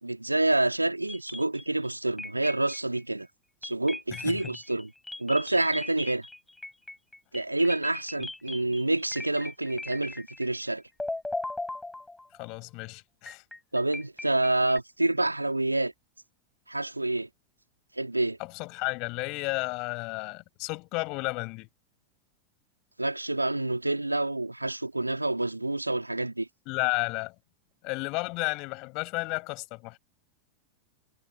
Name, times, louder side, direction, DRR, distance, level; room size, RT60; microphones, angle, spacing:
voice 1, 0.0-3.3 3.6-4.9 5.2-6.3 7.3-10.8 13.7-15.9 16.7-17.3 18.0-18.4 23.0-26.5, right 2 dB, 90° right, 3.6 m, -28 dB
sound 1, 1.1-1.9 2.2-3.0 3.6-10.7 11.0-12.5 13.3-14.8, left 2 dB, 5° left, 6.2 m, -39 dB
voice 2, 4.1-4.5 12.4-13.4 18.4-21.7 26.7-27.3 27.8-30.0, left 26 dB, 45° left, 7.2 m, -32 dB
figure-of-eight pair, 90°, 0 cm